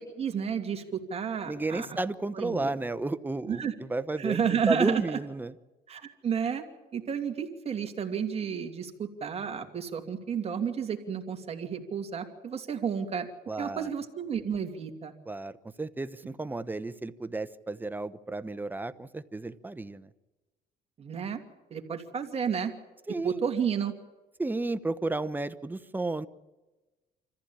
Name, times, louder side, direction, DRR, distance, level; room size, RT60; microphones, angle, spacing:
voice 1, 0.2-2.0 2.3-2.7 3.5-3.7 4.2-5.2 5.9-6.6 6.9-13.3 13.6-15.1 21.0-21.4 21.7-22.7 23.2-23.9, right 7 dB, 35° right, 4 dB, 2.7 m, -31 dB
voice 2, 1.5-5.5 13.5-13.9 15.3-15.5 15.8-20.1 23.1-23.4 24.4-26.3, right 2 dB, 10° right, 13 dB, 0.9 m, -32 dB
25.5 x 15.0 x 8.7 m, 1.2 s
cardioid pair, 110°, 17 cm